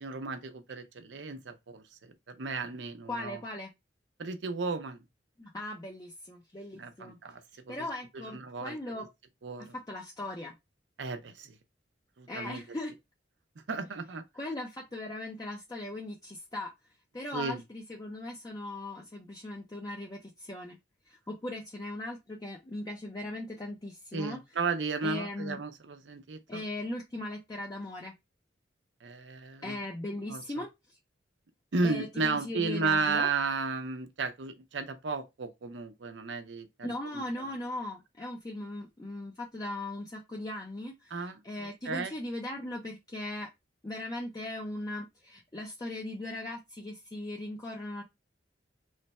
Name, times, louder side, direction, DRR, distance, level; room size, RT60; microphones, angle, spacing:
voice 1, 0.0-3.4 4.2-5.0 6.7-7.4 7.7-7.9 8.1-9.1 9.4-9.7 11.0-11.6 12.2-12.8 13.7-14.2 17.3-17.6 24.1-26.6 29.0-29.8 30.3-30.6 31.7-37.4 41.1-42.1, right 4 dB, 80° right, 0.6 m, -34 dB
voice 2, 3.1-3.7 5.4-7.2 7.7-9.1 9.6-10.5 12.3-12.9 14.3-16.7 17.1-20.8 21.1-24.4 25.0-25.6 26.5-28.1 29.6-30.7 31.8-33.3 36.8-43.5 43.8-48.0, left 1 dB, 20° left, 0.5 m, -39 dB
3.2 x 2.2 x 4.1 m
head